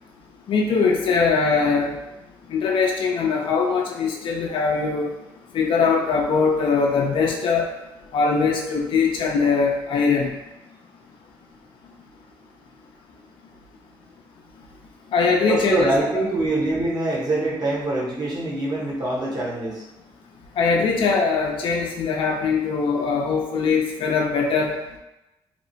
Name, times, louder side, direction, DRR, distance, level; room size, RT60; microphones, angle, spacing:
voice 1, 0.5-1.9 2.5-5.1 5.5-7.7 8.1-10.3 15.1-16.2 20.6-24.7, left 5 dB, 60° left, 0 dB, 0.4 m, -21 dB
voice 2, 15.5-19.8, right 2 dB, 45° right, -4 dB, 1.0 m, -24 dB
2.8 x 2.0 x 2.7 m, 0.95 s
cardioid pair, 70°, 10 cm